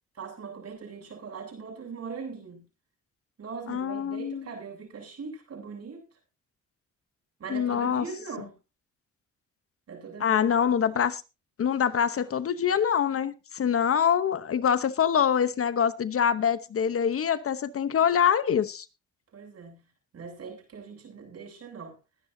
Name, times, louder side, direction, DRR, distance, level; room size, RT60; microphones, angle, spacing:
voice 1, 0.2-2.6 3.4-6.0 7.4-8.6 9.9-10.4 19.3-19.9 20.1-22.0, right 5 dB, 55° right, 7.6 m, -40 dB
voice 2, 3.7-4.5 7.5-8.0 10.2-11.2 11.6-18.8, left 8 dB, 50° left, 0.9 m, -25 dB
21.0 x 10.5 x 2.7 m
cardioid pair, 90°, 30 cm